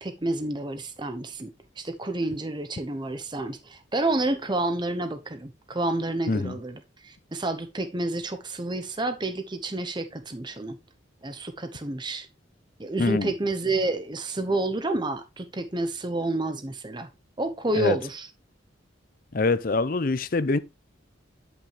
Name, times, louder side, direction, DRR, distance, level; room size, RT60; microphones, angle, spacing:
voice 1, 0.0-1.5 1.8-10.8 11.2-12.3 12.8-17.1 17.4-18.3, right 2 dB, 25° right, 0.8 m, -29 dB
voice 2, 13.0-13.3 17.7-18.0 19.3-20.6, left 3 dB, 45° left, 0.6 m, -24 dB
10.5 x 6.0 x 3.3 m
head